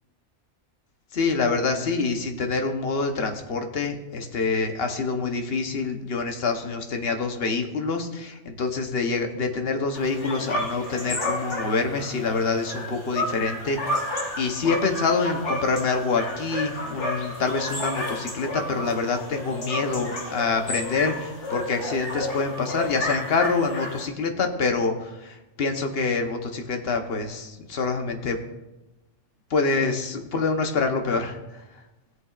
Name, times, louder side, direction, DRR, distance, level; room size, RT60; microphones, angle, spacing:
voice 1, 1.1-14.0 14.4-28.4 29.5-31.6, left 4 dB, 60° left, 5 dB, 1.2 m, -26 dB
sound 1, 9.9-24.1, left 1 dB, 80° left, 2.2 m, -31 dB
16.5 x 7.8 x 2.5 m, 0.98 s
omnidirectional pair, 1.2 m